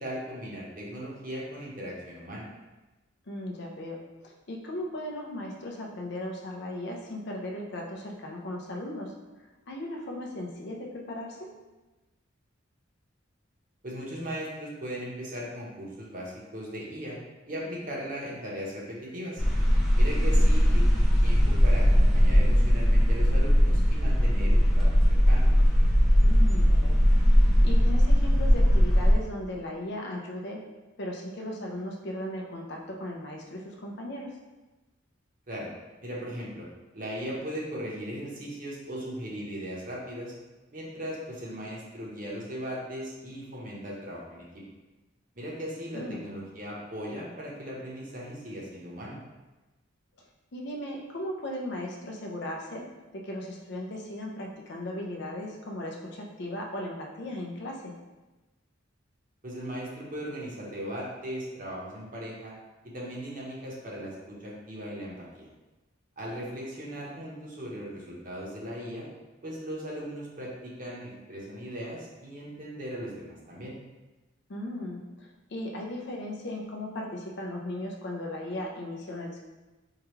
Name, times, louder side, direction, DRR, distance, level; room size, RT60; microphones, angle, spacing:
voice 1, 0.0-2.5 13.8-17.2 17.5-19.4 19.9-25.5 35.5-35.7 36.0-36.7 36.9-40.3 40.7-44.6 45.3-49.2 59.4-62.5 62.9-64.1 64.4-65.5 66.2-69.1 69.4-73.8, equal, 40° right, -4 dB, 0.9 m, -38 dB
voice 2, 3.3-9.1 9.7-11.5 20.2-20.5 26.2-27.0 27.4-30.6 31.0-34.4 45.9-46.2 50.2-52.8 53.1-57.9 74.5-79.4, left 1 dB, 55° left, 0 dB, 0.6 m, -37 dB
sound 1, 19.4-29.1, equal, ahead, 0.6 m, -20 dB
4.7 x 2.3 x 3.1 m, 1.1 s
head